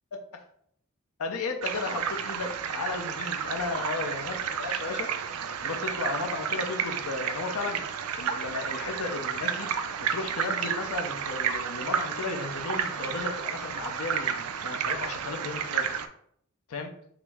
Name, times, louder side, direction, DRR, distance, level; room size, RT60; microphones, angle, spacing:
voice 1, 1.2-5.1 5.6-7.9 8.1-9.7 10.0-15.9 16.7-16.9, left 3 dB, 90° left, 4 dB, 0.6 m, -34 dB
sound 1, 1.6-16.1, right 7 dB, 90° right, 0.4 m, -31 dB
5.7 x 2.0 x 3.5 m, 0.67 s
head